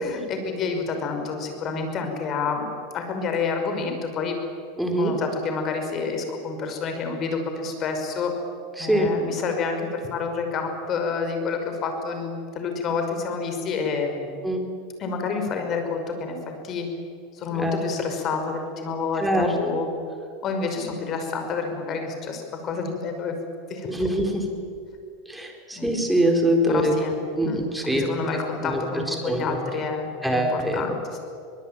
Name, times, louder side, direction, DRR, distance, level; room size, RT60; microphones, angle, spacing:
voice 1, 0.0-2.7 2.9-4.4 5.0-8.3 8.8-14.3 15.0-16.4 16.6-16.9 17.3-19.9 20.4-23.3 23.7-23.9 25.7-25.9 26.7-27.2 27.4-31.2, left 4 dB, 35° left, 5 dB, 5.6 m, -29 dB
voice 2, 4.8-5.1 8.8-9.1 14.4-14.6 17.5-17.8 19.2-19.5 23.9-24.4 25.3-27.0 27.4-28.1 28.6-29.6 30.2-30.8, right 1 dB, 5° right, 2 dB, 4.3 m, -23 dB
23.5 x 21.0 x 9.1 m, 2.4 s
supercardioid pair, 130°, 0 cm